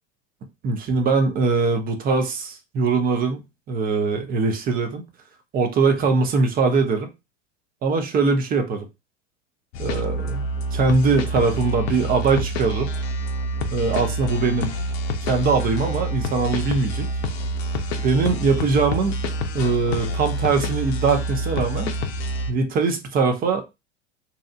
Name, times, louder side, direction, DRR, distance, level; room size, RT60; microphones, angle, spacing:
voice 1, 0.6-5.0 5.5-7.1 7.8-8.9 9.8-10.4 10.7-12.9 13.7-14.8 15.2-17.1 18.0-19.1 19.5-21.9 22.5-23.6, right 4 dB, 25° right, 0.5 m, -22 dB
sound 1, 9.7-22.5, equal, 55° left, 0.6 m, -27 dB
2.8 x 2.4 x 2.3 m
figure-of-eight pair, 85°, 38 cm